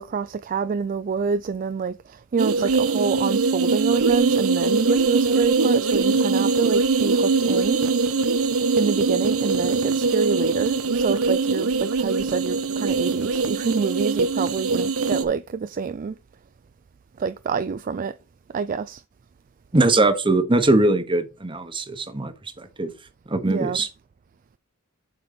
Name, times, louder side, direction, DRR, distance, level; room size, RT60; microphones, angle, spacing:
voice 1, 0.0-7.8 8.8-16.2 17.2-18.2 18.5-19.0 23.5-23.8, right 5 dB, 35° right, 0.3 m, -27 dB
sound 1, 2.4-15.2, right 4 dB, 70° right, 0.9 m, -22 dB
voice 2, 19.7-22.9 23.3-23.9, right 2 dB, 20° right, 1.0 m, -21 dB
7.7 x 4.3 x 5.2 m
head